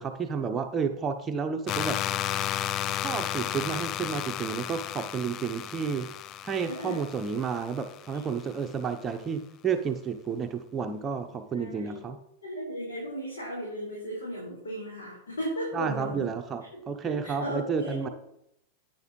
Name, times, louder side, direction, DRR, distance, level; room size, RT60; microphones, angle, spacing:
voice 1, 0.0-2.0 2.9-6.1 6.4-12.2 15.7-18.1, right 6 dB, 20° right, 5 dB, 0.8 m, -31 dB
sound 1, 1.7-8.5, left 12 dB, 35° left, 0.3 m, -33 dB
voice 2, 6.6-7.0 11.5-12.0 12.4-16.3 16.7-18.1, equal, 70° left, -4 dB, 4.6 m, -36 dB
14.5 x 9.4 x 3.1 m, 0.79 s
figure-of-eight pair, 90°, 0 cm